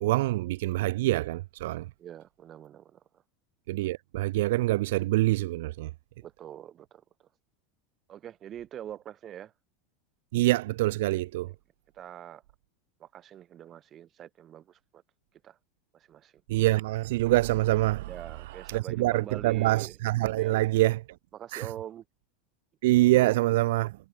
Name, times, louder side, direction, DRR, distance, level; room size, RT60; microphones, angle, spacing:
voice 1, 0.0-1.9 3.7-5.9 10.3-11.5 16.5-18.1 18.7-21.0 21.5-21.7 22.8-23.9, right 17 dB, 75° right, 0.3 m, -25 dB
voice 2, 2.0-3.2 6.2-7.0 8.1-9.5 11.4-11.5 11.9-12.4 13.0-15.0 15.4-15.6 15.9-16.4 18.1-20.0 20.4-20.6 21.3-22.0 23.1-23.4, right 10 dB, 30° right, 3.2 m, -44 dB
supercardioid pair, 145°, 0 cm